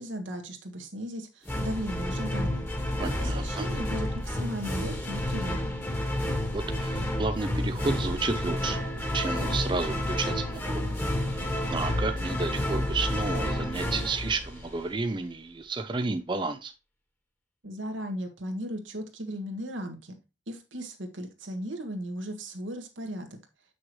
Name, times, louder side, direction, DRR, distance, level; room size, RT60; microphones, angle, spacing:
voice 1, 0.0-2.6 3.0-5.8 17.6-20.2 20.5-23.4, equal, 85° right, 1.6 m, -36 dB
sound 1, 1.4-15.1, left 1 dB, 10° left, 1.3 m, -30 dB
voice 2, 3.0-3.7 6.5-8.8 9.1-10.8 11.7-16.7, right 3 dB, 25° right, 0.4 m, -31 dB
7.6 x 6.1 x 3.2 m
head